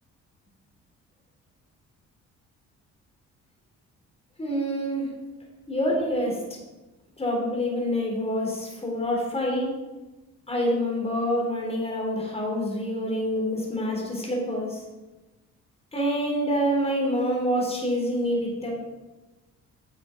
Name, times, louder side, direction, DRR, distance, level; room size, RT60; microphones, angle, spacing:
voice 1, 4.4-5.1 5.7-6.4 7.2-9.7 10.5-14.8 15.9-18.7, equal, 20° left, -1 dB, 3.8 m, -26 dB
9.7 x 6.8 x 5.2 m, 1.1 s
cardioid pair, 90°, 30 cm